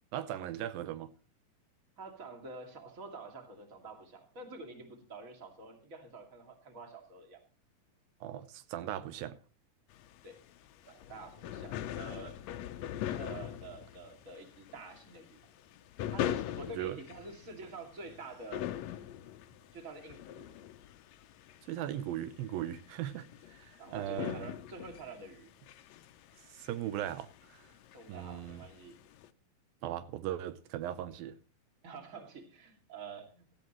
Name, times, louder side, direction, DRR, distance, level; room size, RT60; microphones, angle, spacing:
voice 1, 0.1-1.1 8.2-9.4 16.8-17.0 21.6-24.5 26.5-27.7 28.1-28.6 29.8-31.3, right 12 dB, 85° right, 2.5 m, -38 dB
voice 2, 2.0-7.4 10.2-10.4 10.9-12.4 13.1-15.4 16.1-18.7 19.7-20.6 23.8-25.5 27.9-29.0 31.8-33.5, right 3 dB, 25° right, 2.3 m, -48 dB
sound 1, 9.9-29.3, left 11 dB, 90° left, 1.5 m, -42 dB
17.0 x 13.5 x 3.0 m
omnidirectional pair, 4.1 m